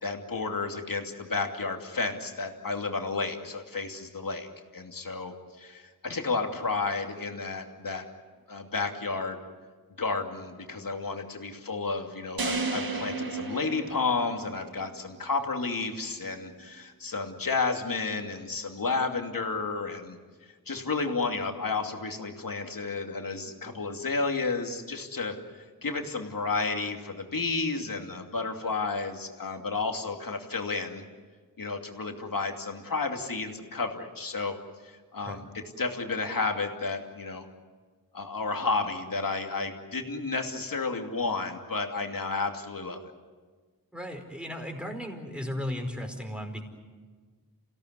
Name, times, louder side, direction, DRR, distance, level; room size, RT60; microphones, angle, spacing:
voice 1, 0.0-4.5 4.7-8.0 8.5-9.4 10.0-20.2 20.7-31.0 31.6-34.5 34.8-37.5 38.1-43.0, left 4 dB, 70° left, 3 dB, 2.7 m, -32 dB
sound 1, 12.4-14.7, right 3 dB, 80° right, 2.3 m, -33 dB
voice 2, 43.9-46.6, left 1 dB, 5° right, 3 dB, 4.9 m, -35 dB
28.5 x 17.0 x 9.7 m, 1.5 s
wide cardioid pair, 55°, 35 cm